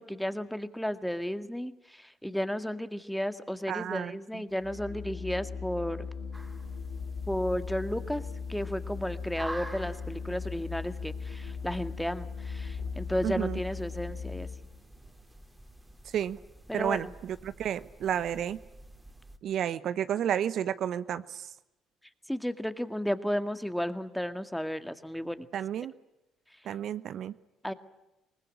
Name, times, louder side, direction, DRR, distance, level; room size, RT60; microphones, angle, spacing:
voice 1, 0.0-6.0 7.3-8.2 8.5-14.5 16.7-17.1 22.3-25.5 27.6-27.7, equal, 5° left, 10 dB, 2.0 m, -33 dB
voice 2, 3.7-4.4 13.2-13.6 16.1-16.4 16.7-18.6 19.4-21.5 25.5-25.9 26.6-27.3, right 9 dB, 60° right, 13 dB, 0.9 m, -31 dB
Organ, 4.5-14.8, left 5 dB, 65° left, 2.8 m, -38 dB
sound 1, 6.3-19.4, right 1 dB, 10° right, 3.1 m, -49 dB
25.0 x 20.0 x 9.9 m, 0.94 s
hypercardioid pair, 55°, 0 cm